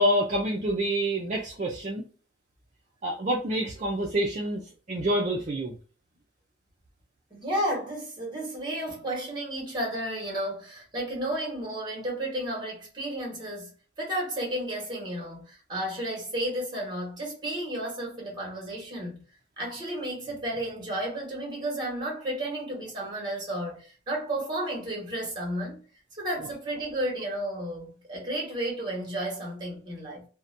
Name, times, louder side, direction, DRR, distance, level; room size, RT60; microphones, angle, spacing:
voice 1, 0.0-2.0 3.0-5.8, equal, 40° right, 0.4 m, -27 dB
voice 2, 7.3-19.2 19.6-25.8 26.1-30.3, right 1 dB, 25° right, 1.2 m, -32 dB
2.6 x 2.1 x 2.5 m
head